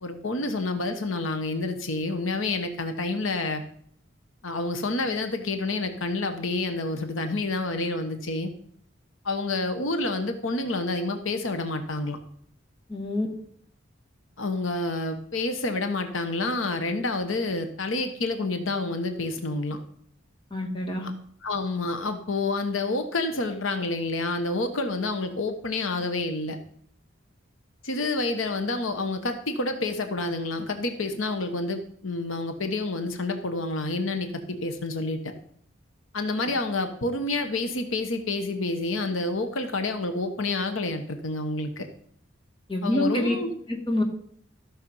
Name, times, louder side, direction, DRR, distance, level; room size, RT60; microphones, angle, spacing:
voice 1, 0.0-3.6 4.4-8.5 9.2-12.2 14.4-19.8 21.0-21.1 21.4-26.6 27.8-35.3 36.1-41.9 42.8-43.5, left 2 dB, 85° left, 7 dB, 1.1 m, -28 dB
voice 2, 12.9-13.3 20.5-21.1 42.7-43.4 43.9-44.0, left 1 dB, 25° left, 0 dB, 2.1 m, -26 dB
13.5 x 6.5 x 5.6 m, 0.63 s
head